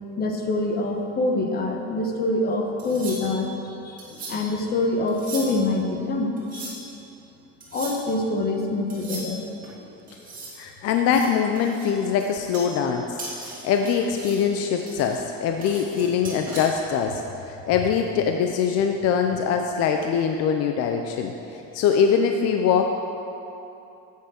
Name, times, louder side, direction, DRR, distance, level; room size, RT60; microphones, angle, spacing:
voice 1, 0.2-6.7 7.7-9.4, left 2 dB, 30° left, 2 dB, 1.2 m, -25 dB
sound 1, 2.8-3.5 4.0-4.6 5.1-5.7 6.4-7.0 7.6-8.1 8.9-9.7 10.1-10.6 11.0-12.9 13.2-14.5 14.9-16.7, right 2 dB, 25° right, 2.4 m, -39 dB
voice 2, 10.6-22.8, left 7 dB, 50° left, 4 dB, 0.6 m, -23 dB
10.0 x 8.4 x 6.4 m, 2.9 s
cardioid pair, 170°, 31 cm